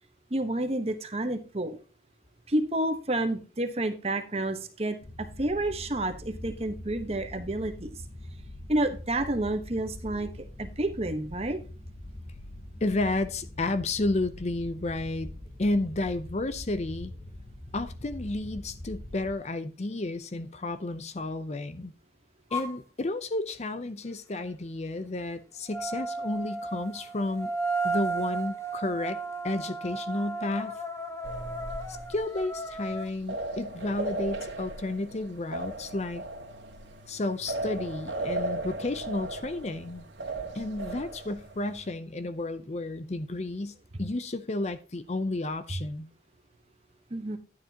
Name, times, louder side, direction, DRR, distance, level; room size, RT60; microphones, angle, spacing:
voice 1, 0.3-1.8 2.5-7.9 8.7-10.3 10.6-11.6 47.1-47.4, right 1 dB, 35° right, 1.2 m, -30 dB
sound 1, 5.0-19.3, left 1 dB, 75° left, 4.0 m, -43 dB
voice 2, 12.8-15.3 15.6-17.1 17.7-21.9 22.5-27.5 27.8-30.8 31.9-36.2 37.1-40.1 40.5-46.1, left 2 dB, 35° left, 0.6 m, -32 dB
sound 2, 22.5-22.8 25.7-33.1, right 3 dB, 15° left, 0.9 m, -34 dB
sound 3, 31.2-41.9, right 2 dB, 80° right, 1.9 m, -37 dB
11.5 x 9.5 x 2.9 m
head